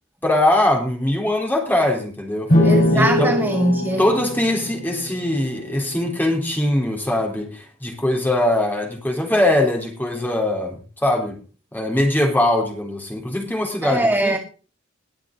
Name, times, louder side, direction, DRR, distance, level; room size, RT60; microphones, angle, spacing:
voice 1, 0.2-2.5 2.9-3.3 4.0-11.4 11.7-14.4, left 1 dB, 10° left, 3.7 m, -21 dB
sound 1, 2.5-6.1, left 1 dB, 45° left, 4.6 m, -21 dB
voice 2, 2.6-4.1 13.8-14.4, right 1 dB, 10° right, 0.9 m, -21 dB
20.5 x 7.3 x 3.9 m
head